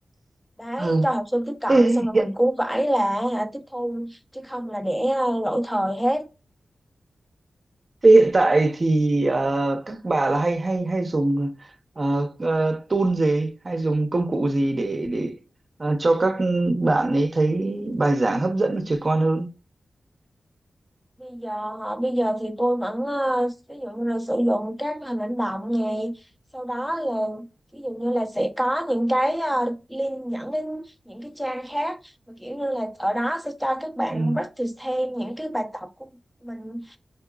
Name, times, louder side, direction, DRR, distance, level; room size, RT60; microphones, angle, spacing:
voice 1, 0.6-6.3 21.2-26.1 26.5-27.5 27.7-36.1 36.4-37.0, equal, 5° left, 0.7 m, -26 dB
voice 2, 1.7-2.2 8.0-11.5 12.0-15.4 15.8-19.5 34.1-34.4, right 2 dB, 40° right, 0.8 m, -21 dB
5.5 x 2.8 x 2.3 m
wide cardioid pair, 70°, 0 cm